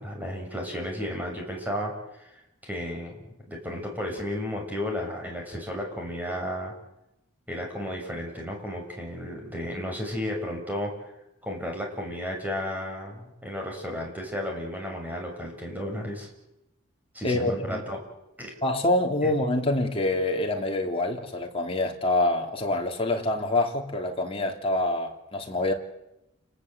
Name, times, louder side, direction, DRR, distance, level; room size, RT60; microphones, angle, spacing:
voice 1, 0.0-2.0 2.6-6.7 7.5-10.9 11.4-16.3 17.1-18.0 18.4-18.5 19.2-19.3, equal, 10° right, 6.9 m, -33 dB
voice 2, 17.2-17.8 18.6-25.7, left 2 dB, 30° left, 3.1 m, -26 dB
29.5 x 20.0 x 8.2 m
head